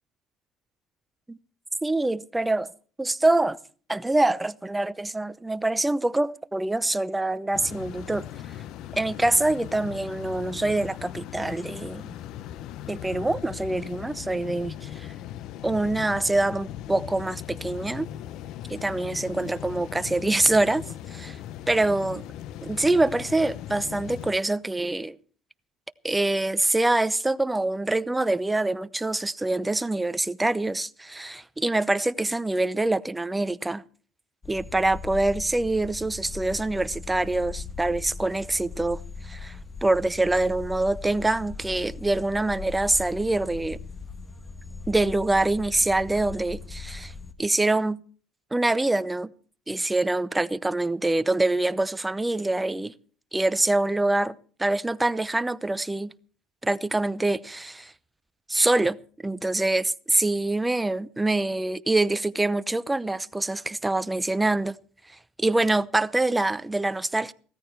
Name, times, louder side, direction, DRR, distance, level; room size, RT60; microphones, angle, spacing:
voice 1, 1.8-2.7 3.0-3.6 3.9-8.3 9.0-12.2 12.9-15.1 15.6-18.1 18.7-21.4 21.7-22.2 22.6-25.2 26.0-33.8 34.5-39.0 39.2-43.8 44.9-47.1 47.4-48.0 48.5-49.3 49.7-52.9 53.3-56.1 56.6-57.9 58.5-59.0 59.2-64.8 65.1-67.3, right 2 dB, 10° right, 0.7 m, -25 dB
sound 1, 7.5-24.3, left 12 dB, 70° left, 0.7 m, -39 dB
sound 2, 34.4-47.3, left 4 dB, 20° left, 1.5 m, -39 dB
16.0 x 14.0 x 4.6 m
cardioid pair, 105°, 0 cm